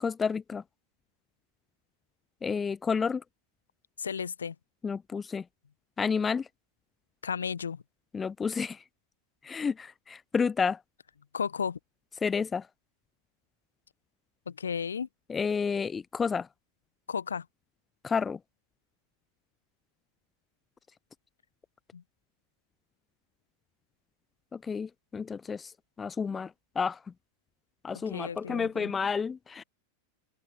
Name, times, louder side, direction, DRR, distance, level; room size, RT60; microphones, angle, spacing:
voice 1, 0.0-0.6 2.4-3.2 4.8-5.4 6.0-6.5 8.1-8.8 9.4-10.8 12.2-12.6 15.3-16.5 18.0-18.4 24.5-25.7 26.0-26.5 26.8-27.0 27.8-29.6, left 5 dB, 15° left, 0.3 m, -30 dB
voice 2, 4.0-4.5 7.2-7.8 11.3-11.8 14.5-15.1 17.1-17.4 21.9-22.0 27.9-28.9, left 6 dB, 70° left, 1.1 m, -34 dB
open air
figure-of-eight pair, 90°, 0 cm